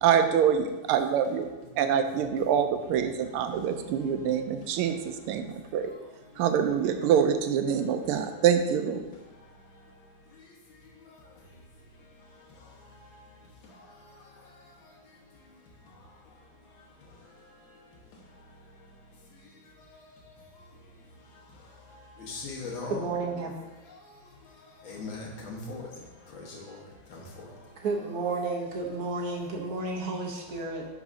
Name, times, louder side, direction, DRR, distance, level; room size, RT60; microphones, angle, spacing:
voice 1, 0.0-1.5 1.8-5.4 5.7-5.9 6.4-9.0, right 8 dB, 80° right, 7 dB, 1.5 m, -25 dB
voice 2, 22.2-23.2 24.8-25.9 26.3-26.8 27.1-27.2, left 3 dB, 65° left, -2 dB, 2.1 m, -38 dB
voice 3, 22.8-23.5 27.8-30.9, right 3 dB, 55° right, 0 dB, 1.2 m, -31 dB
11.0 x 4.9 x 2.7 m, 1.1 s
omnidirectional pair, 2.4 m